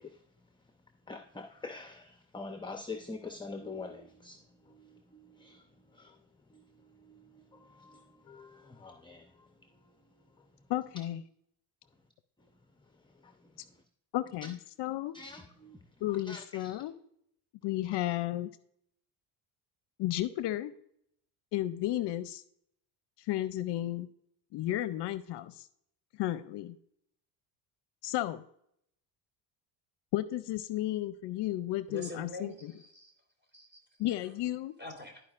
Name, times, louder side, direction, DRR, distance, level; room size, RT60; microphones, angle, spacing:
voice 1, 1.1-4.4 4.8-5.6 6.0-6.1 7.1-7.2 7.7-8.0 8.3-9.2 15.1-15.8 16.3-16.8, left 3 dB, 10° left, 6 dB, 0.6 m, -44 dB
voice 2, 10.7-11.2 14.1-15.1 16.0-16.9 17.6-18.5 20.0-20.7 21.5-22.4 23.2-24.1 24.5-25.7 26.2-26.8 28.0-28.4 30.1-32.8 34.0-34.7, left 14 dB, 60° left, 14 dB, 0.6 m, -33 dB
voice 3, 31.9-33.1 33.5-34.3 34.8-35.2, left 2 dB, 25° right, 2 dB, 3.3 m, -45 dB
13.0 x 5.0 x 2.4 m, 0.70 s
supercardioid pair, 85°, 48 cm